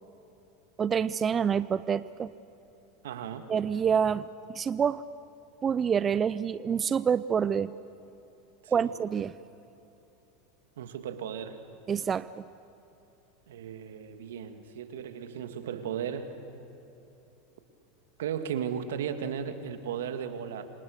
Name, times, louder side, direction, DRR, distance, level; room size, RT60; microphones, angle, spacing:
voice 1, 0.8-2.3 3.5-5.0 5.6-7.7 8.7-9.3 11.9-12.4, right 7 dB, 25° right, 16 dB, 0.5 m, -27 dB
voice 2, 3.0-3.4 8.6-8.9 10.8-11.6 13.5-16.4 18.2-20.7, right 8 dB, 80° right, 8 dB, 2.0 m, -35 dB
28.0 x 26.0 x 6.5 m, 2.9 s
hypercardioid pair, 110°, 0 cm